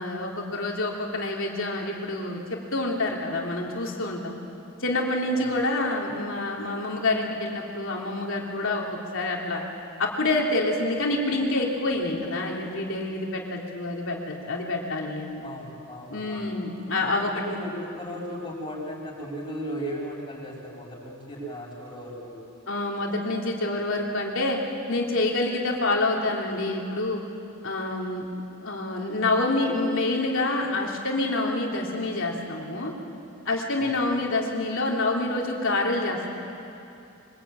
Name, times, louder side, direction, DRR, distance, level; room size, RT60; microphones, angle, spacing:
voice 1, 0.0-4.4 4.8-8.8 9.1-9.6 10.0-15.5 16.1-17.3 22.7-24.6 24.9-27.2 27.6-28.3 28.6-32.9 33.4-36.3, left 2 dB, 65° left, -1 dB, 3.3 m, -27 dB
voice 2, 15.4-16.5 17.3-22.4 33.8-34.2, equal, 25° left, -3 dB, 6.5 m, -36 dB
24.5 x 21.0 x 8.9 m, 2.7 s
head